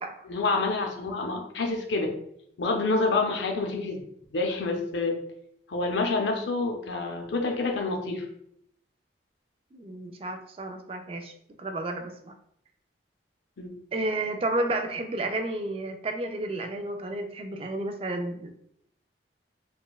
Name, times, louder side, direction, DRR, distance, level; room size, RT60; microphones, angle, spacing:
voice 1, 0.2-2.1 2.6-4.0 4.3-5.2 5.7-8.3 13.6-13.7, left 3 dB, 80° left, 2 dB, 0.5 m, -27 dB
voice 2, 9.7-11.3 11.6-12.3 13.9-18.5, right 2 dB, 30° right, 6 dB, 0.3 m, -31 dB
4.0 x 2.2 x 2.3 m, 0.71 s
head